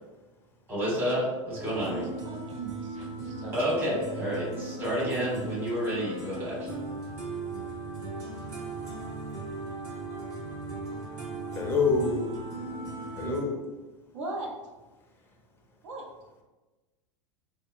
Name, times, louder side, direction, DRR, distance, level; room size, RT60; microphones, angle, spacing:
voice 1, 0.7-2.0 3.5-6.7, equal, 15° right, -8 dB, 1.1 m, -30 dB
sound 1, 1.5-13.4, right 2 dB, 45° right, 1.4 m, -38 dB
voice 2, 1.7-3.7 14.1-14.5 15.8-16.0, right 2 dB, 70° right, 0 dB, 0.6 m, -40 dB
voice 3, 11.5-12.3 13.2-13.6, left 4 dB, 15° left, 0 dB, 0.5 m, -26 dB
2.7 x 2.0 x 2.5 m, 1.2 s
hypercardioid pair, 90°, 17 cm